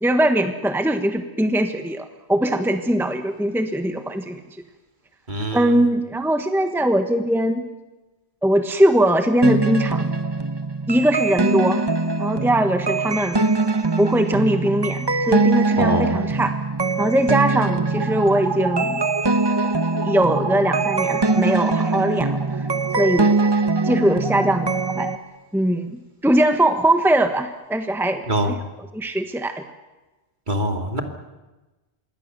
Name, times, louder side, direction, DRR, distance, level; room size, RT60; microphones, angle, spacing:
voice 1, 0.0-4.4 5.5-7.6 8.4-10.1 10.9-11.9 12.2-13.5 14.0-16.5 17.0-19.0 20.0-22.7 23.0-23.5 23.8-25.1 25.5-28.5 28.9-29.6, right 1 dB, ahead, 7 dB, 1.3 m, -21 dB
voice 2, 5.3-5.7 15.8-16.2 28.3-28.6 30.5-31.0, right 1 dB, 45° right, 4 dB, 2.7 m, -23 dB
sound 1, 9.4-25.2, right 3 dB, 25° right, 1.1 m, -22 dB
26.5 x 22.0 x 6.9 m, 1.1 s
omnidirectional pair, 1.1 m